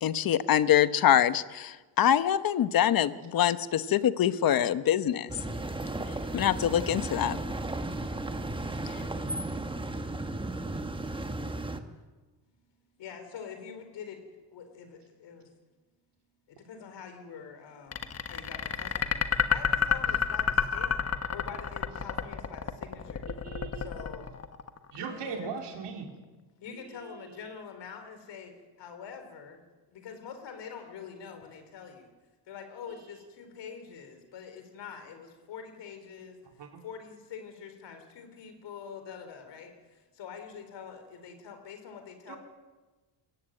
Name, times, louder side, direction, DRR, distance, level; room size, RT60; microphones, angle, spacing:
voice 1, 0.0-5.3 6.3-7.4, left 10 dB, 50° left, 13 dB, 1.0 m, -24 dB
sound 1, 5.3-11.8, right 2 dB, 10° right, 1.3 m, -35 dB
voice 2, 13.0-14.2 14.5-15.5 16.5-21.0 21.3-23.3 23.7-24.3 24.9-25.6 26.6-29.6 29.9-32.1 32.5-36.4 36.8-42.4, left 7 dB, 70° left, 7 dB, 4.2 m, -45 dB
sound 2, 17.9-25.0, left 7 dB, 35° left, 1.3 m, -29 dB
voice 3, 23.3-23.9 24.9-26.1 26.7-27.0 36.6-36.7 42.3-42.4, right 6 dB, 70° right, 2 dB, 4.1 m, -39 dB
22.0 x 15.0 x 9.1 m, 1.3 s
cardioid pair, 145°, 44 cm